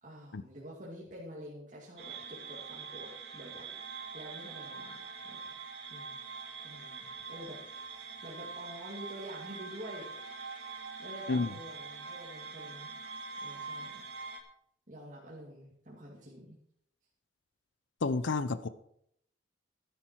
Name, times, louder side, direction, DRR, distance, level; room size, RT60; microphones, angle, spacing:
voice 1, 0.0-3.8 4.1-5.6 5.9-7.6 7.9-10.1 11.0-12.9 13.4-14.0 14.9-16.6, equal, 40° right, -6 dB, 2.3 m, -48 dB
sound 1, 2.0-14.4, right 4 dB, 75° right, 2.4 m, -44 dB
voice 2, 18.0-18.7, left 3 dB, 85° left, 14 dB, 0.6 m, -30 dB
12.5 x 10.0 x 4.5 m, 0.70 s
head